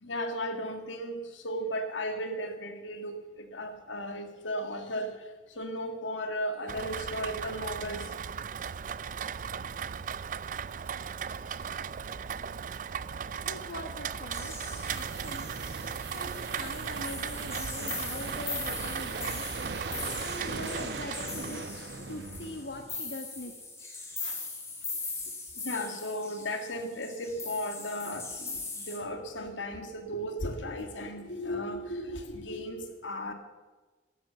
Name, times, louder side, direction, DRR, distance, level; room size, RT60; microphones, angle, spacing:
voice 1, 0.0-5.2 5.6-8.1 24.2-24.4 25.6-33.3, equal, 90° left, 7 dB, 1.9 m, -35 dB
Rain, 6.7-21.6, right 7 dB, 45° right, 0.4 m, -37 dB
voice 2, 13.4-15.5 16.1-19.4 20.1-23.5, left 2 dB, 70° left, 4 dB, 1.3 m, -42 dB
sound 1, 14.3-29.0, left 3 dB, 15° left, 2.3 m, -40 dB
sound 2, 14.4-23.0, right 4 dB, 65° right, 1.1 m, -40 dB
12.5 x 10.5 x 8.0 m, 1.3 s
head